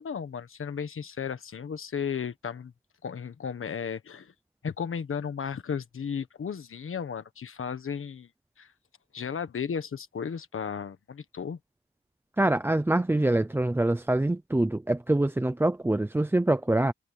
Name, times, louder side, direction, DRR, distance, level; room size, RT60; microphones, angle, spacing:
voice 1, 0.0-2.7 3.0-4.3 4.6-8.3 8.6-8.7 9.1-11.6, left 7 dB, 80° left, 1.4 m, -34 dB
voice 2, 12.4-16.9, right 1 dB, 10° right, 0.5 m, -25 dB
wide cardioid pair, 120°, 21 cm